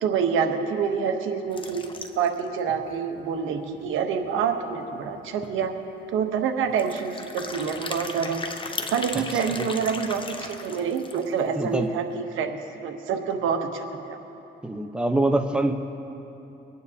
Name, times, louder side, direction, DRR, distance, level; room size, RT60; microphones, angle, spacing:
voice 1, 0.0-1.8 2.2-5.7 6.1-8.4 8.9-14.2, right 6 dB, 85° right, 6 dB, 1.0 m, -27 dB
sound 1, 1.5-2.4 2.9-3.0 3.2-3.3 3.7-3.8 5.1-5.2 5.4-5.7 6.7-11.4, left 3 dB, 25° left, 0.9 m, -36 dB
voice 2, 11.6-11.9 14.6-15.7, right 2 dB, 5° right, 5 dB, 0.8 m, -24 dB
24.0 x 9.4 x 2.8 m, 3.0 s
cardioid pair, 90°, 20 cm